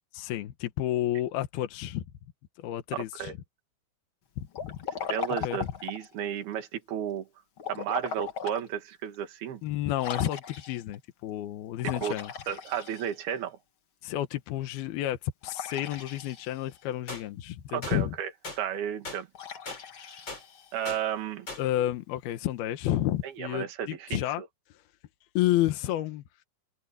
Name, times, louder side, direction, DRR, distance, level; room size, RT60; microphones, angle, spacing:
voice 1, 0.1-2.1 2.6-3.3 4.4-4.8 5.4-5.6 9.6-12.3 14.0-18.2 21.6-24.4 25.3-26.2, left 13 dB, 80° left, 3.1 m, -30 dB
voice 2, 2.9-3.3 5.1-7.3 7.7-9.6 12.0-12.2 12.5-13.6 17.7-18.3 18.6-19.3 20.7-21.5 23.4-24.5, right 9 dB, 75° right, 4.1 m, -33 dB
Liquid, 4.5-6.1 7.6-8.7 9.1-9.2 10.0-11.0 11.8-13.4 15.4-16.8 19.3-21.0, left 6 dB, 45° left, 1.9 m, -38 dB
sound 1, 17.1-17.2 17.8-18.0 18.4-18.6 19.0-19.2 19.7-19.8 20.3-20.4 20.8-21.0 21.5-21.6, left 2 dB, 25° left, 7.1 m, -38 dB
omnidirectional pair, 4.5 m